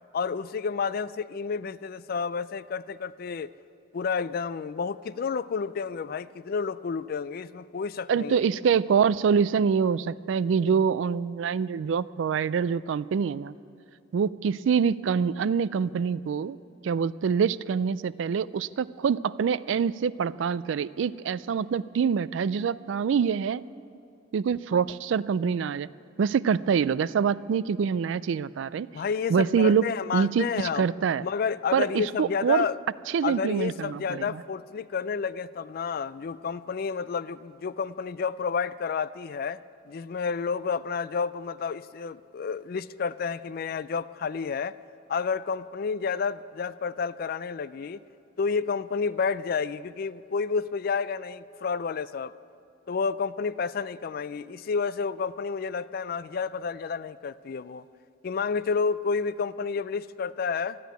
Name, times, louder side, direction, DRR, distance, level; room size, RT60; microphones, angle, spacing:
voice 1, 0.1-3.5 3.9-8.4 28.9-30.9 31.2-32.8 33.2-44.8 45.1-48.0 48.4-52.3 52.9-57.8 58.2-60.8, left 5 dB, 50° left, 16 dB, 0.3 m, -30 dB
voice 2, 8.1-13.5 14.1-16.6 16.8-23.6 24.3-25.9 26.2-28.9 29.3-29.8 30.1-31.3 31.7-32.7 33.1-34.4, right 6 dB, 75° right, 18 dB, 0.3 m, -25 dB
13.5 x 10.0 x 9.2 m, 2.6 s
head